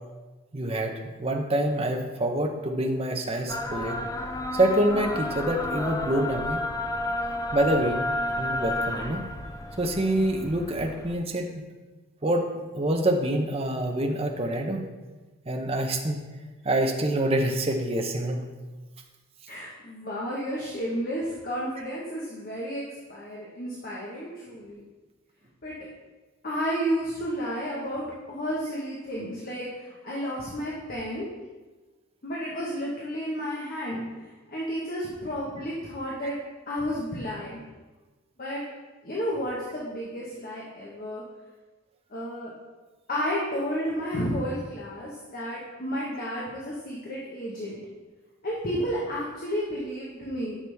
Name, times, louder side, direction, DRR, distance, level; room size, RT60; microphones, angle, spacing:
voice 1, 0.5-4.0 4.5-6.6 7.5-8.1 8.4-9.3 9.8-11.5 12.2-12.5 12.7-14.9 15.5-16.2 16.6-18.4, right 1 dB, 25° right, 3 dB, 0.7 m, -26 dB
sound 1, 3.5-11.1, left 1 dB, 15° left, 0.3 m, -31 dB
voice 2, 19.5-22.8 23.1-24.8 25.6-25.8 26.4-28.0 28.3-31.2 32.2-36.4 36.7-37.6 38.4-38.6 39.0-41.2 42.1-42.5 43.1-47.8 48.4-50.6, equal, 40° left, -5 dB, 1.2 m, -32 dB
9.9 x 6.1 x 3.4 m, 1.2 s
head